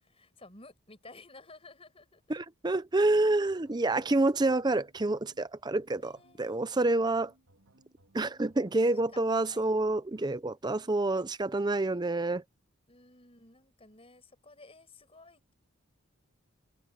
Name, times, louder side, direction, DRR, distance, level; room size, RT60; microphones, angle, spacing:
voice 1, 0.2-2.4 6.0-7.0 9.1-9.7 12.9-15.5, left 3 dB, 25° left, 5.9 m, -54 dB
voice 2, 2.3-7.3 8.1-12.4, right 2 dB, 20° right, 0.5 m, -28 dB
sound 1, 3.2-11.0, right 1 dB, 85° right, 2.8 m, -65 dB
open air
head